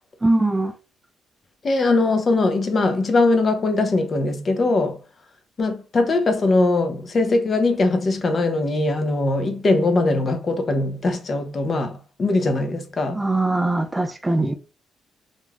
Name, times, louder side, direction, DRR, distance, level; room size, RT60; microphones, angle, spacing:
voice 1, 0.2-0.8 13.1-14.5, right 2 dB, 15° right, 0.3 m, -21 dB
voice 2, 1.6-5.0 5.6-13.2, left 2 dB, 40° left, 0.6 m, -21 dB
3.1 x 2.5 x 2.2 m
cardioid pair, 90°, 0 cm